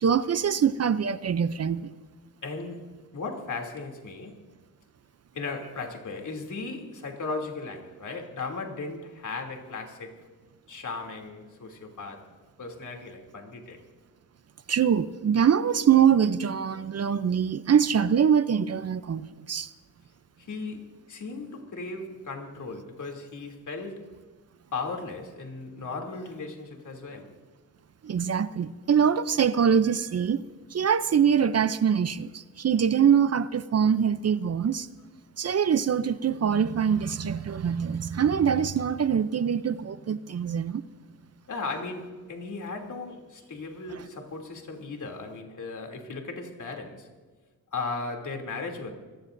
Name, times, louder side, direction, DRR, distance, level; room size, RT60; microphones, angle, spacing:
voice 1, 0.0-1.9 14.7-19.7 28.0-30.4 30.7-34.9 35.4-40.8, right 7 dB, 50° right, 0.6 m, -24 dB
voice 2, 2.4-4.4 5.3-10.2 10.7-12.3 12.6-13.8 20.4-24.1 24.7-27.3 41.5-47.1 47.7-48.9, left 3 dB, 60° left, 3.0 m, -36 dB
25.5 x 19.0 x 2.6 m
cardioid pair, 90°, 33 cm